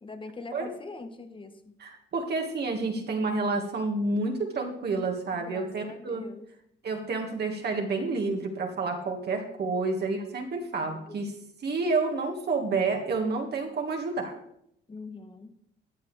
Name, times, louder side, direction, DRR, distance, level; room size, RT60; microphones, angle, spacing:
voice 1, 0.0-1.7 5.3-6.5 10.2-10.3 10.8-11.2 14.9-15.5, left 3 dB, 25° left, 9 dB, 1.2 m, -43 dB
voice 2, 1.8-6.2 6.8-11.3 11.6-14.3, right 3 dB, 55° right, 2 dB, 1.8 m, -29 dB
14.0 x 8.3 x 3.4 m, 0.73 s
cardioid pair, 90°, 20 cm